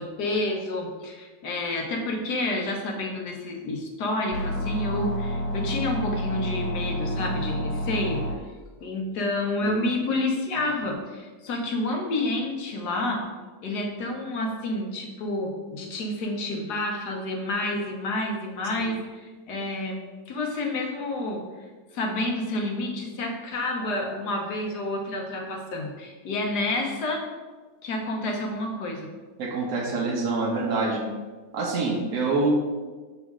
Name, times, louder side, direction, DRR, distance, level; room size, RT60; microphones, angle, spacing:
voice 1, 0.0-8.2 8.8-13.2 13.6-21.4 21.9-27.2 27.8-29.1, left 2 dB, 70° left, 1 dB, 1.5 m, -29 dB
sound 1, 4.3-8.3, equal, 85° left, 1.4 m, -29 dB
voice 2, 29.4-31.1 31.5-32.5, right 3 dB, 65° right, -1 dB, 1.5 m, -26 dB
7.2 x 4.2 x 3.6 m, 1.4 s
omnidirectional pair, 1.9 m